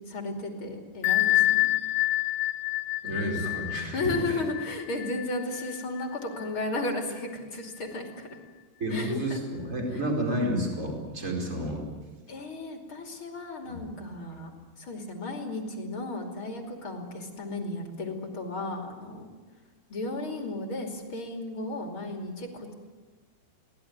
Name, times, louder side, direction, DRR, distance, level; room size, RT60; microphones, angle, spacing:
voice 1, 0.0-1.7 3.9-8.3 8.9-9.4 9.9-10.0 12.3-14.5 14.8-19.3 19.9-22.7, left 2 dB, 35° left, 2 dB, 3.0 m, -34 dB
Bell, 1.0-6.5, left 17 dB, 75° left, 2.3 m, -27 dB
voice 2, 3.0-4.4 8.8-11.8 13.7-13.8, right 1 dB, 15° right, 0 dB, 4.6 m, -30 dB
23.0 x 18.0 x 9.5 m, 1.3 s
omnidirectional pair, 4.8 m